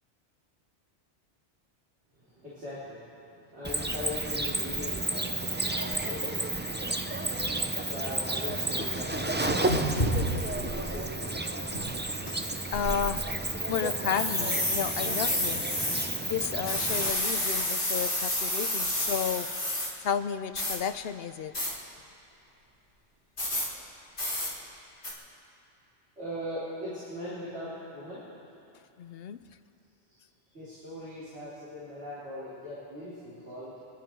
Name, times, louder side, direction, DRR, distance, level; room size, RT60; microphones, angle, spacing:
voice 1, 2.2-10.1 10.5-11.3 24.0-24.1 26.2-28.2 30.5-33.8, left 1 dB, 70° right, -12 dB, 4.2 m, -41 dB
Cricket, 3.6-17.1, right 2 dB, 15° right, 0.4 m, -32 dB
sound 1, 7.4-7.5 8.1-8.2 8.4-10.9 11.2-11.4 11.7-12.3 12.7-13.5 14.1-16.1 16.7-19.9 20.5-20.8 21.5-21.7 23.4-23.7 24.2-24.5 25.0-25.1, left 1 dB, 45° left, 3.3 m, -30 dB
voice 2, 12.7-13.3 13.7-15.6 16.3-19.5 20.0-21.5 29.0-29.4, left 7 dB, 65° left, 12 dB, 0.8 m, -32 dB
28.0 x 11.5 x 4.5 m, 2.6 s
omnidirectional pair, 1.2 m